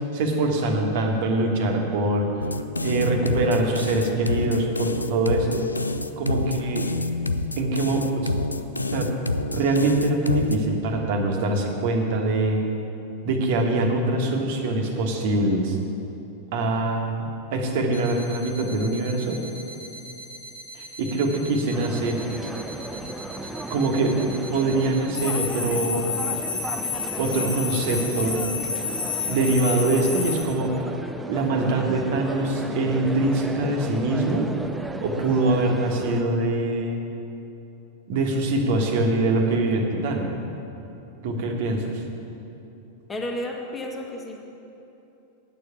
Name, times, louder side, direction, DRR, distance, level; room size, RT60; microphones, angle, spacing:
voice 1, 0.1-2.3 2.8-5.6 6.2-6.8 7.6-8.3 8.9-9.1 9.5-12.6 13.2-15.8 16.5-19.4 20.7-22.2 23.7-26.1 27.2-28.4 29.2-30.7 31.3-34.5 35.0-37.0 38.1-40.3 41.2-42.0, right 2 dB, 50° right, 2 dB, 1.4 m, -23 dB
sound 1, 2.4-10.6, left 2 dB, 80° left, 0.4 m, -28 dB
sound 2, 17.9-30.4, left 5 dB, 65° left, 2.0 m, -32 dB
sound 3, 21.7-36.2, right 2 dB, 10° right, 0.5 m, -35 dB
voice 2, 43.1-44.4, left 1 dB, 15° left, 1 dB, 1.5 m, -32 dB
9.1 x 6.7 x 8.4 m, 2.9 s
figure-of-eight pair, 90°, 0 cm